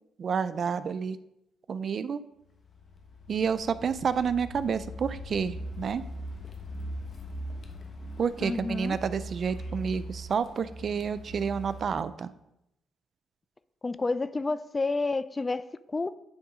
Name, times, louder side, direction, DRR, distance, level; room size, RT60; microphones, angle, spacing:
voice 1, 0.2-1.2 1.7-2.2 3.3-6.0 8.2-12.3, right 6 dB, 50° right, 14 dB, 0.4 m, -29 dB
Car, 2.5-12.0, equal, 45° left, 1.1 m, -41 dB
voice 2, 8.4-9.0 13.8-16.2, left 3 dB, 25° left, 16 dB, 0.3 m, -30 dB
9.8 x 3.7 x 4.9 m, 0.85 s
cardioid pair, 90°, 0 cm